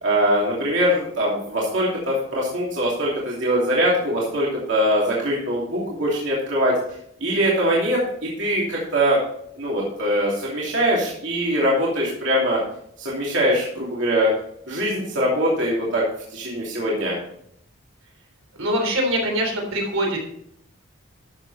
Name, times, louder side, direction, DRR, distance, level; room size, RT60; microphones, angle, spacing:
voice 1, 0.0-6.7 7.2-9.2 9.6-12.6 13.0-14.3 14.7-16.0 16.3-17.1, equal, 60° right, -5 dB, 2.8 m, -22 dB
voice 2, 18.6-20.2, right 1 dB, 80° right, 1 dB, 3.6 m, -23 dB
12.5 x 7.0 x 4.1 m, 0.69 s
head